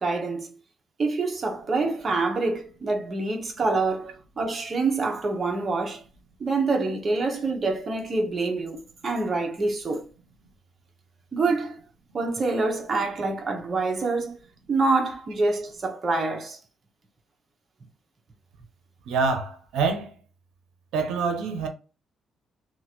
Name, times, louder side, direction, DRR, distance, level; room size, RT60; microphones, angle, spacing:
voice 1, 0.0-0.5 1.0-6.0 6.4-10.0 11.3-11.8 12.1-14.4 14.7-16.6, right 3 dB, 40° right, 0.9 m, -26 dB
voice 2, 19.1-20.2 20.9-21.7, right 4 dB, 85° right, 0.7 m, -26 dB
2.9 x 2.4 x 2.9 m
cardioid pair, 90°, 0 cm